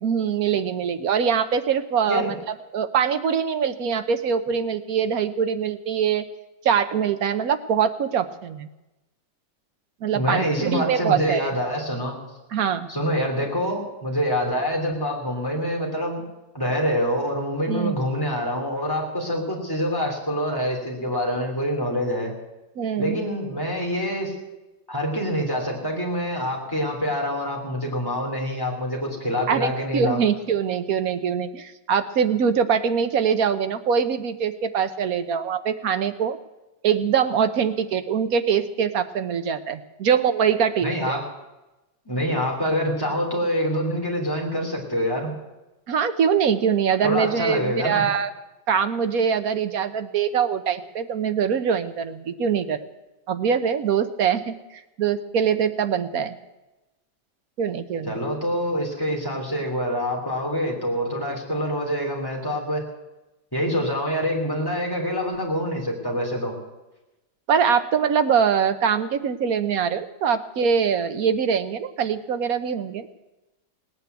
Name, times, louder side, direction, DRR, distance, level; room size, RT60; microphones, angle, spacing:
voice 1, 0.0-2.4 2.7-6.2 6.6-8.7 10.0-11.5 12.5-12.9 17.7-18.0 22.8-23.2 29.5-36.4 36.8-41.1 45.9-48.3 48.7-52.8 53.3-54.5 55.0-56.3 57.6-58.2 67.5-73.2, right 7 dB, 60° right, 10 dB, 1.2 m, -23 dB
voice 2, 10.1-12.1 12.9-16.2 16.5-22.3 23.0-24.4 24.9-30.2 40.8-41.3 42.1-45.3 47.0-48.0 58.1-62.8 63.5-66.5, equal, 10° left, -1 dB, 3.1 m, -26 dB
18.0 x 9.4 x 8.0 m, 1.0 s
omnidirectional pair, 1.8 m